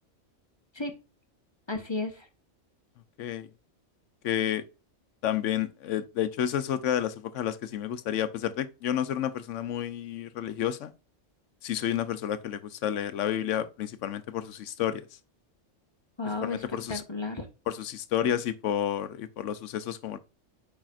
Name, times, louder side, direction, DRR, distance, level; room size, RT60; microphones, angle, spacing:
voice 1, 1.7-2.3 16.2-17.5, left 3 dB, 25° left, 1.1 m, -33 dB
voice 2, 4.2-4.6 5.2-10.9 11.6-15.0 16.4-17.0 17.7-20.2, left 10 dB, 85° left, 1.0 m, -30 dB
8.8 x 4.8 x 2.5 m
omnidirectional pair, 1.2 m